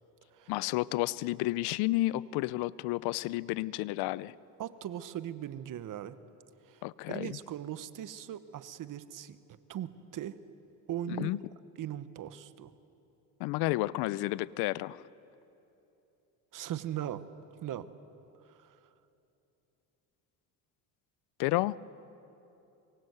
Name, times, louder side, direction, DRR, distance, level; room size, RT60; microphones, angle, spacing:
voice 1, 0.5-4.3 6.8-7.4 11.1-11.4 13.4-15.0 21.4-21.8, left 18 dB, 75° left, 20 dB, 0.7 m, -31 dB
voice 2, 4.6-6.2 6.6-9.4 9.7-10.4 10.9-11.4 11.8-12.7 16.5-17.2 17.6-17.9 18.4-18.9, right 11 dB, 55° right, 13 dB, 1.3 m, -39 dB
24.5 x 24.0 x 8.1 m, 2.9 s
supercardioid pair, 85°, 39 cm